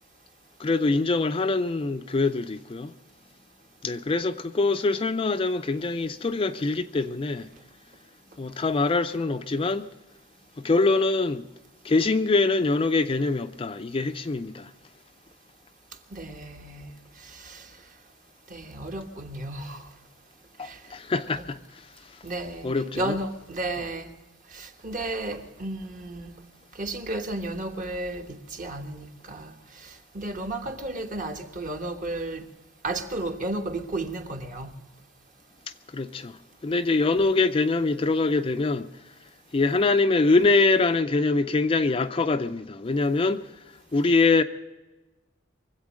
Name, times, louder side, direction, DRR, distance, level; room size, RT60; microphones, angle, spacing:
voice 1, 0.6-2.9 3.8-7.5 8.4-9.9 10.6-11.5 11.8-14.7 20.6-21.8 22.6-23.2 35.9-38.9 39.5-43.5 43.9-44.4, left 3 dB, 25° left, 0.4 m, -24 dB
voice 2, 16.1-16.9 17.2-17.7 18.5-19.9 20.6-20.8 21.3-21.5 22.2-24.1 24.5-26.4 26.7-32.4 32.8-34.7 37.2-37.3, right 2 dB, 40° right, 1.3 m, -33 dB
23.5 x 8.2 x 6.3 m
head